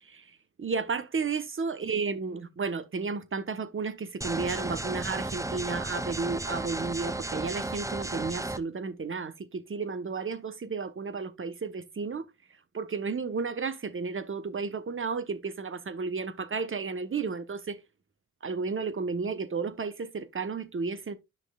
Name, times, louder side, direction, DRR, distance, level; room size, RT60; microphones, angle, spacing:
voice 1, 0.0-12.3 12.7-17.8 18.4-21.1, right 4 dB, 45° right, 1.1 m, -33 dB
sound 1, 4.2-8.6, right 2 dB, 10° right, 0.6 m, -34 dB
10.0 x 5.9 x 2.3 m
cardioid pair, 75°, 30 cm